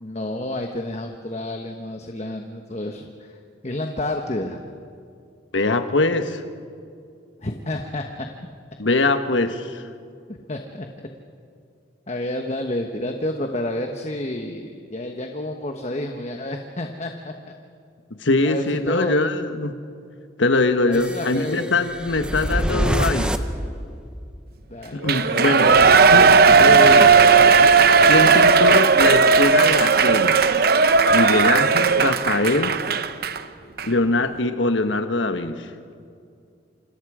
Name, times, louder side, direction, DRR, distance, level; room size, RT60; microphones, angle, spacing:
voice 1, 0.0-3.4 3.6-4.6 7.4-8.3 10.3-10.9 12.1-17.5 18.4-19.2 20.9-21.7 24.7-26.3 26.6-27.1, left 1 dB, 35° left, 4 dB, 1.2 m, -29 dB
voice 2, 5.5-6.4 8.8-9.9 18.2-19.7 20.4-23.3 24.9-25.7 26.1-27.1 28.1-30.4 31.1-32.8 33.8-35.7, left 2 dB, 85° left, 8 dB, 1.4 m, -22 dB
sound 1, 20.9-24.4, equal, 5° right, 0.9 m, -26 dB
Shout / Cheering, 25.1-33.4 33.8-33.9, right 5 dB, 55° right, 0.8 m, -15 dB
28.5 x 26.0 x 5.0 m, 2.4 s
head